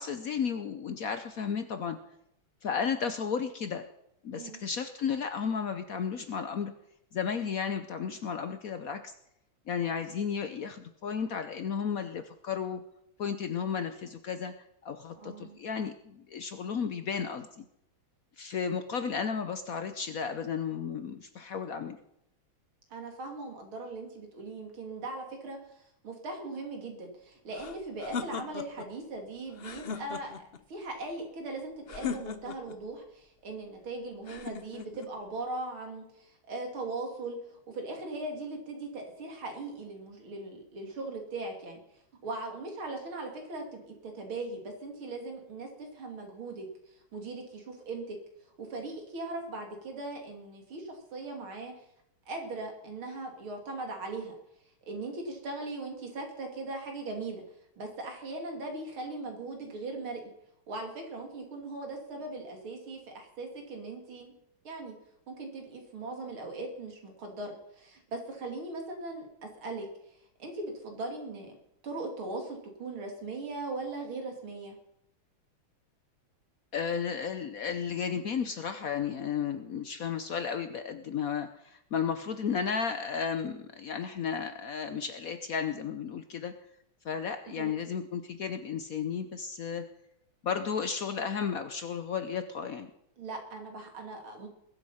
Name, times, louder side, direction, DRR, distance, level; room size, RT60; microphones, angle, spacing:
voice 1, 0.0-2.0 2.6-3.9 4.2-6.7 7.1-9.1 9.7-12.8 13.2-14.5 14.8-17.6 18.4-22.0 76.7-86.5 87.0-89.9 90.4-92.9, left 6 dB, 60° left, 9 dB, 0.9 m, -33 dB
voice 2, 15.2-15.6 22.9-30.4 30.7-41.8 42.2-48.2 48.6-51.7 52.3-54.3 54.9-57.4 57.8-60.2 60.7-64.3 64.7-64.9 65.3-69.9 70.4-71.6 71.8-74.8 87.5-87.7 93.2-94.5, right 2 dB, 90° right, 3 dB, 3.5 m, -39 dB
sound 1, 27.5-28.9 29.5-30.6 31.9-32.8 34.3-35.1, left 6 dB, 90° left, 0.5 m, -38 dB
21.0 x 8.1 x 5.7 m, 0.77 s
omnidirectional pair, 2.2 m